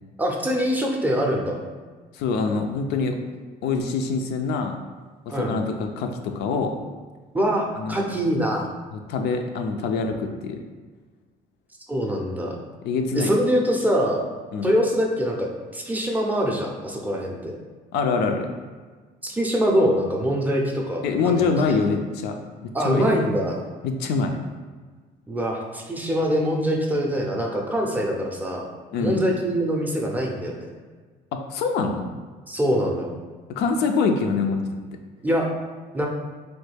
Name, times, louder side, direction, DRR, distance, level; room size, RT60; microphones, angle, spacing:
voice 1, 0.2-1.6 5.3-5.6 7.3-8.7 11.9-12.6 13.1-14.2 14.6-17.6 19.2-21.8 22.7-23.6 25.3-28.7 29.0-30.7 32.5-33.2 35.2-35.5 35.9-36.1, equal, 10° right, -1 dB, 0.4 m, -24 dB
voice 2, 2.1-3.2 3.6-4.8 5.3-6.8 7.8-8.0 8.9-10.6 12.8-13.3 14.5-14.7 17.9-18.5 21.0-22.4 22.8-23.1 23.8-24.3 28.9-29.2 31.3-32.1 33.6-34.6, left 4 dB, 75° left, 4 dB, 0.4 m, -24 dB
3.1 x 2.2 x 3.3 m, 1.4 s
cardioid pair, 110°, 17 cm